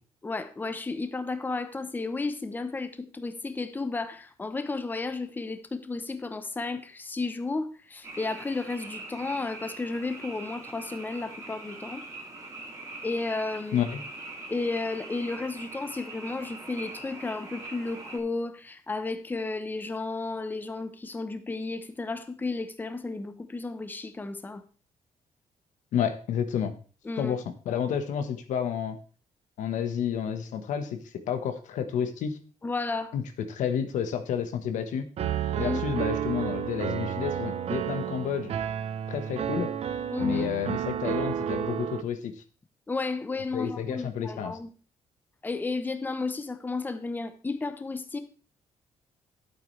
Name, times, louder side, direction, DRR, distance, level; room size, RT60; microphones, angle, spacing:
voice 1, 0.2-12.0 13.0-13.8 14.5-24.6 27.0-27.4 32.6-33.1 35.6-36.0 40.1-40.5 42.9-44.7 45.4-48.2, left 3 dB, 15° left, 0.8 m, -33 dB
Frog, 8.0-18.2, right 2 dB, 25° right, 2.5 m, -42 dB
voice 2, 13.7-14.0 25.9-26.7 27.2-29.0 29.6-31.0 31.3-32.4 33.1-35.1 35.6-38.5 39.1-39.7 40.2-42.3 43.5-44.6, left 8 dB, 90° left, 1.3 m, -30 dB
Piano, 35.2-42.0, right 9 dB, 55° right, 0.7 m, -31 dB
11.5 x 8.5 x 3.2 m
cardioid pair, 145°, 12 cm